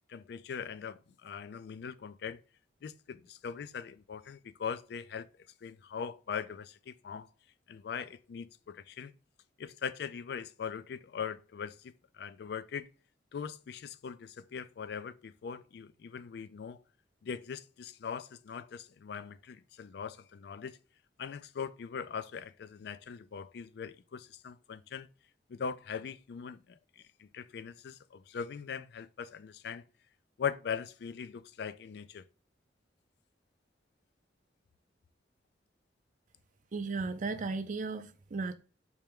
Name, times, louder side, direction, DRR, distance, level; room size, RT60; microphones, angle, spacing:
voice 1, 0.1-2.4 2.8-5.3 5.6-7.3 7.7-9.1 9.6-12.9 13.3-16.8 17.2-20.8 21.2-25.1 25.5-29.8 30.4-32.2, left 6 dB, 65° left, 0.3 m, -41 dB
voice 2, 36.7-38.5, right 3 dB, 45° right, 0.4 m, -35 dB
4.4 x 3.3 x 3.4 m
head